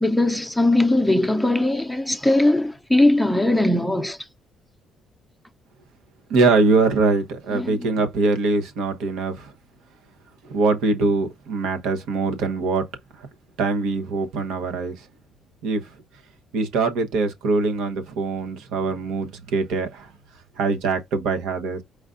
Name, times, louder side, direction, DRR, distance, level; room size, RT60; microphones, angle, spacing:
voice 1, 0.0-4.2 7.5-7.9, left 1 dB, ahead, 0.6 m, -20 dB
voice 2, 6.3-9.5 10.4-12.8 13.6-15.0 15.6-15.9 16.5-20.1 20.6-21.8, right 3 dB, 90° right, 1.0 m, -23 dB
4.9 x 2.5 x 3.7 m
cardioid pair, 110°, 0 cm